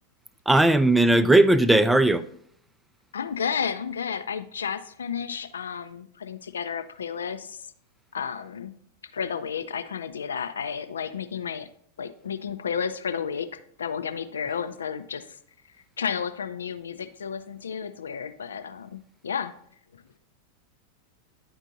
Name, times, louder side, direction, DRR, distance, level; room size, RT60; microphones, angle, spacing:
voice 1, 0.5-2.2, right 1 dB, 5° right, 0.3 m, -18 dB
voice 2, 3.1-7.7 8.1-8.7 9.0-11.7 12.0-15.3 16.0-19.5 19.9-20.0, left 7 dB, 70° left, 0.4 m, -32 dB
11.0 x 4.4 x 2.6 m
figure-of-eight pair, 90°, 0 cm